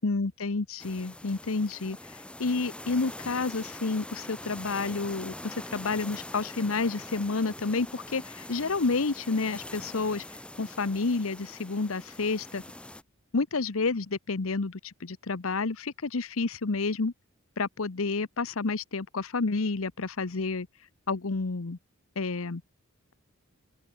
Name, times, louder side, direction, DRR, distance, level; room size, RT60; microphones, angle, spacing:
voice 1, 0.0-2.0 2.4-10.2 10.6-12.6 13.3-17.1 17.6-20.7 21.1-21.8 22.2-22.6, left 3 dB, 70° left, 0.9 m, -30 dB
sound 1, 0.8-13.0, left 1 dB, 5° left, 0.6 m, -43 dB
open air
head